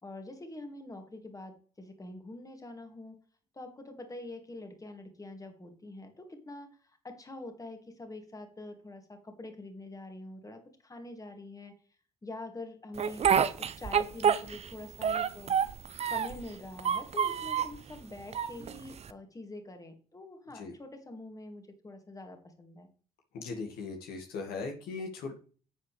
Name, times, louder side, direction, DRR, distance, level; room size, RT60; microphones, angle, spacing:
voice 1, 0.0-3.2 3.5-11.7 12.2-13.3 13.6-15.6 16.1-22.9, left 2 dB, 20° left, 5 dB, 2.5 m, -45 dB
Speech, 13.0-14.7 15.0-16.4 16.8-17.8 18.3-19.1, right 8 dB, 35° right, 0.8 m, -28 dB
voice 2, 23.3-25.3, left 4 dB, 55° left, 2 dB, 2.1 m, -38 dB
11.0 x 8.3 x 3.4 m, 0.39 s
figure-of-eight pair, 50°, 18 cm